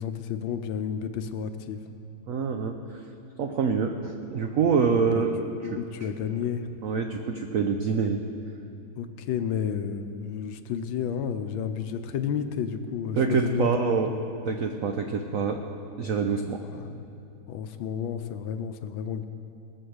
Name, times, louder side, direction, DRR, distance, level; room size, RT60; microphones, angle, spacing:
voice 1, 0.0-1.8 4.8-5.3 5.6-6.7 9.0-14.2 16.6-17.0 17.5-19.2, left 8 dB, 75° left, 9 dB, 1.5 m, -31 dB
voice 2, 2.3-3.0 3.4-5.3 5.7-5.8 6.8-8.2 13.2-14.1 14.4-15.6 16.0-16.6, right 5 dB, 80° right, 5 dB, 0.7 m, -26 dB
19.0 x 6.5 x 7.9 m, 2.7 s
omnidirectional pair, 2.2 m